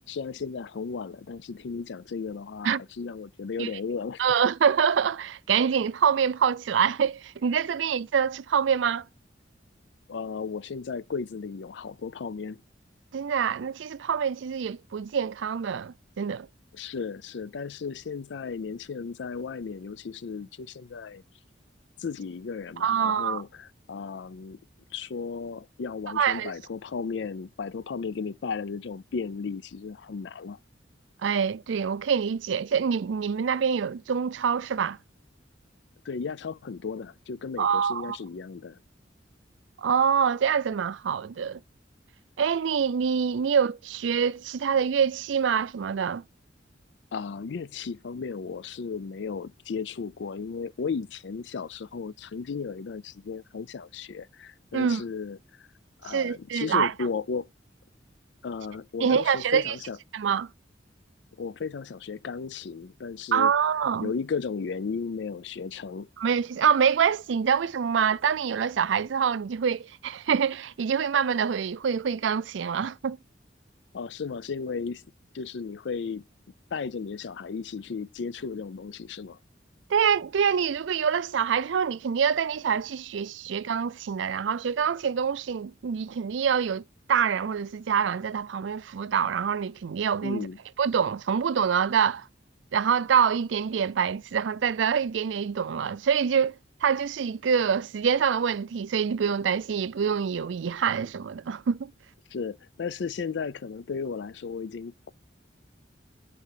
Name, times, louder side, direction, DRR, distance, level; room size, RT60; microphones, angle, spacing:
voice 1, 0.0-4.2 10.1-12.6 16.7-21.2 22.0-24.6 24.9-30.6 36.0-38.8 47.1-55.7 56.0-57.5 58.4-60.0 61.4-63.5 64.0-66.1 73.9-75.0 75.3-76.2 76.7-79.4 90.2-90.6 102.3-105.1, left 5 dB, 70° left, 0.4 m, -35 dB
voice 2, 4.2-9.1 13.1-16.5 22.8-23.4 26.1-26.5 31.2-35.0 37.6-38.2 39.8-41.6 42.4-46.2 54.7-55.0 56.1-56.9 59.0-59.8 60.1-60.5 63.3-64.1 66.2-73.2 79.9-90.5 90.8-92.3 92.7-101.9, right 7 dB, 80° right, 0.4 m, -25 dB
10.0 x 4.2 x 6.6 m
head